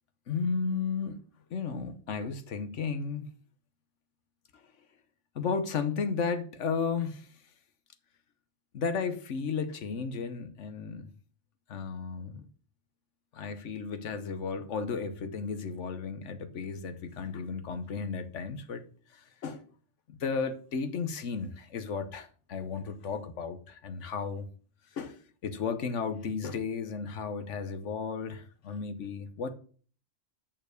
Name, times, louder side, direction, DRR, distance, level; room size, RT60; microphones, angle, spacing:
voice 1, 0.3-1.2 1.5-3.3 5.3-7.3 8.7-11.1 11.7-12.5 13.3-18.8 19.4-19.6 20.1-24.4 25.0-25.2 25.4-29.5, left 5 dB, 80° left, 1.3 m, -34 dB
6.8 x 5.7 x 6.5 m
omnidirectional pair, 1.2 m